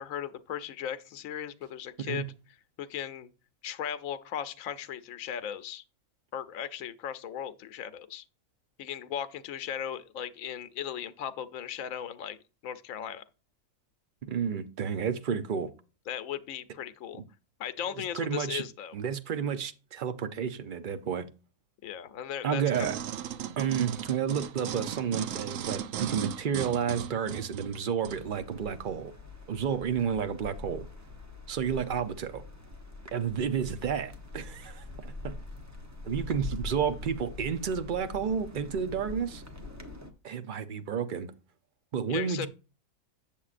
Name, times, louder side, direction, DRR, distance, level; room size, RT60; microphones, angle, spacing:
voice 1, 0.0-2.3 2.8-3.3 3.6-5.8 6.3-8.2 8.8-12.4 12.6-13.2 16.1-17.2 17.6-18.9 21.8-22.9 42.1-42.5, left 9 dB, 80° left, 1.0 m, -37 dB
voice 2, 14.3-15.7 18.0-18.6 18.9-21.3 22.4-23.0 23.6-29.1 29.5-30.9 31.5-32.4 33.1-35.4 36.0-39.4 40.2-41.3 41.9-42.5, right 7 dB, 50° right, 0.7 m, -31 dB
sound 1, 22.7-28.2 28.8-28.9, right 10 dB, 75° right, 1.0 m, -37 dB
sound 2, 28.0-40.1, left 3 dB, 15° right, 0.8 m, -44 dB
8.3 x 7.2 x 2.5 m
omnidirectional pair, 1.4 m